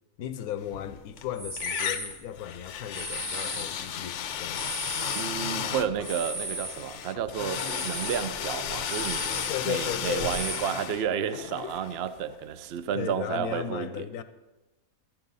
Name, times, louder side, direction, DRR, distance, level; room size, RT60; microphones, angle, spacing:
voice 1, 0.2-4.9 9.5-10.4 12.9-14.2, left 9 dB, 85° left, 1.2 m, -35 dB
sound 1, 0.6-1.2 1.6-12.4, left 9 dB, 65° left, 0.8 m, -34 dB
sound 2, 1.2-2.2 2.9-3.9 4.4-6.8 7.1-10.6, right 1 dB, 85° right, 4.8 m, -37 dB
voice 2, 5.1-9.3 9.6-14.0, right 8 dB, 55° right, 0.7 m, -31 dB
15.5 x 12.0 x 4.1 m
omnidirectional pair, 1.5 m